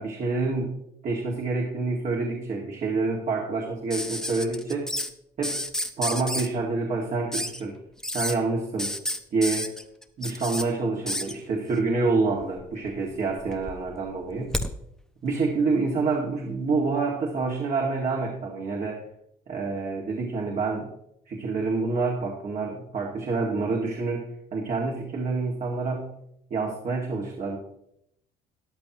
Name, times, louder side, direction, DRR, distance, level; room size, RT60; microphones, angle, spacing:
voice 1, 0.0-4.9 5.4-5.6 6.0-7.7 8.1-8.9 9.3-9.7 10.2-14.6 15.2-19.0 19.5-20.9 21.3-26.1 26.5-27.6, right 3 dB, 50° right, -1 dB, 2.1 m, -27 dB
sound 1, 3.9-5.1 5.4-6.5 7.3-7.6 8.0-8.3 8.8-10.6 11.1-11.3 12.4-13.0 13.3-14.7 16.1-16.2, left 1 dB, 5° left, 0.8 m, -31 dB
13.5 x 10.0 x 3.0 m, 0.74 s
cardioid pair, 110°, 17 cm